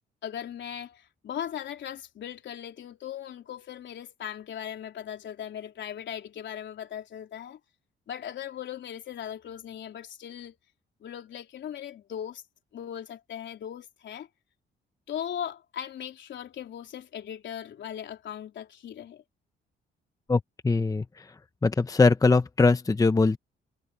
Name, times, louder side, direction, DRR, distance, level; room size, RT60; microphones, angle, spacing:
voice 1, 0.2-7.6 8.1-10.6 11.0-12.4 12.7-14.3 15.1-19.2, left 9 dB, 65° left, 3.6 m, -38 dB
voice 2, 20.3-21.3 21.6-23.4, left 3 dB, 15° left, 0.8 m, -22 dB
cardioid pair, 90°, 20 cm